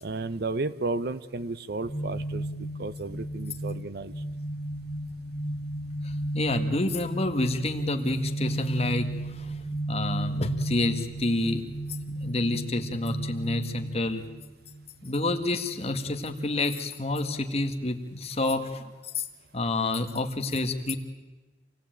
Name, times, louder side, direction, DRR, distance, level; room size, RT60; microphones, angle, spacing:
voice 1, 0.0-4.1, right 3 dB, 60° right, 16 dB, 0.8 m, -33 dB
sound 1, 1.8-14.9, right 1 dB, 20° left, 1.4 m, -34 dB
voice 2, 6.0-9.6 9.9-11.6 12.2-14.2 15.0-18.8 19.1-19.3 19.5-20.9, left 2 dB, 35° left, 6 dB, 1.9 m, -28 dB
27.0 x 18.0 x 9.1 m, 1.2 s
head